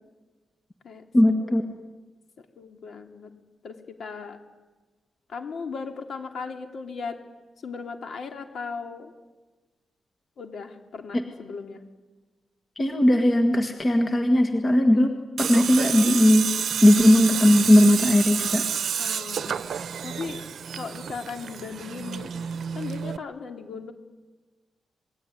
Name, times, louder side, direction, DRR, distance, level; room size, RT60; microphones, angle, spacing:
voice 1, 1.1-1.6 12.8-16.5 16.8-18.7, left 1 dB, 20° left, 5 dB, 1.7 m, -18 dB
voice 2, 2.6-3.3 3.6-4.4 5.3-7.2 7.6-9.1 10.4-11.8 19.0-19.6 20.0-20.4 20.8-22.3 22.7-23.9, left 5 dB, 50° left, 5 dB, 3.0 m, -37 dB
Tools, 15.4-23.2, right 7 dB, 55° right, 0.9 m, -30 dB
27.5 x 21.0 x 9.8 m, 1.2 s
wide cardioid pair, 170°, 0 cm